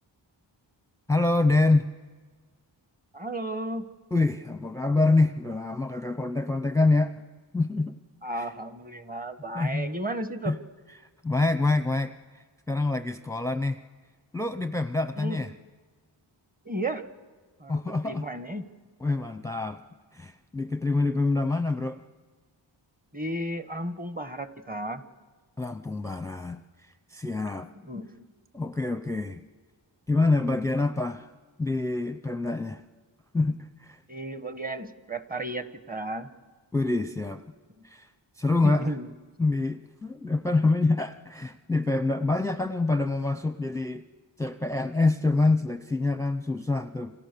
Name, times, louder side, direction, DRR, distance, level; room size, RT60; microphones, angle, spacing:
voice 1, 1.1-1.9 4.1-7.1 7.5-8.0 8.3-8.5 9.5-9.9 10.5-10.6 11.0-13.8 14.3-15.5 17.7-18.3 19.0-19.8 20.1-22.0 25.6-26.6 27.1-27.7 28.5-29.4 30.1-31.3 31.6-32.8 33.3-34.0 36.7-37.4 37.8-38.1 38.4-38.9 39.4-44.0 44.4-47.1, left 3 dB, 5° left, 10 dB, 0.7 m, -26 dB
voice 2, 3.1-3.8 8.2-10.5 15.2-15.5 16.6-17.0 17.6-18.6 23.1-25.0 27.7-28.1 34.1-36.3 38.6-39.1, right 1 dB, 20° right, 11 dB, 1.3 m, -33 dB
29.0 x 26.5 x 6.9 m, 1.4 s
wide cardioid pair, 100°, 45 cm